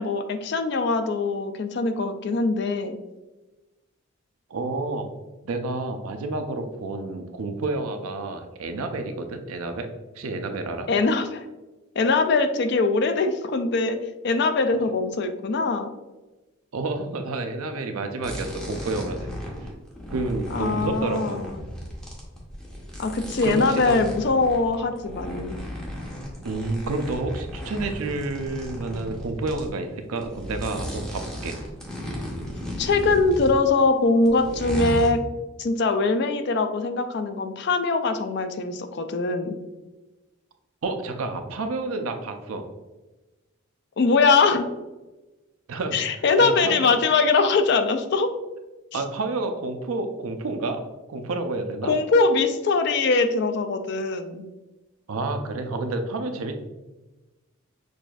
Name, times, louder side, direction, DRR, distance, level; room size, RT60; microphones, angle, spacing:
voice 1, 0.0-3.0 10.9-11.4 12.0-14.0 14.2-15.9 20.5-21.6 23.0-25.6 32.8-35.2 35.6-39.6 44.0-44.7 45.9-48.3 48.9-49.0 51.8-54.5, left 3 dB, 50° left, 8 dB, 0.3 m, -22 dB
voice 2, 4.5-5.1 5.4-9.9 10.2-10.9 16.7-19.3 19.6-19.7 20.1-21.4 23.4-24.0 26.4-31.6 40.8-42.6 45.7-46.0 46.4-46.9 48.9-50.8 51.1-51.9 55.1-56.6, right 3 dB, 80° right, 6 dB, 0.5 m, -29 dB
sound 1, 18.2-29.7 30.2-33.8 34.2-35.1, equal, 5° left, 0.6 m, -35 dB
6.2 x 2.5 x 2.3 m, 1.1 s
head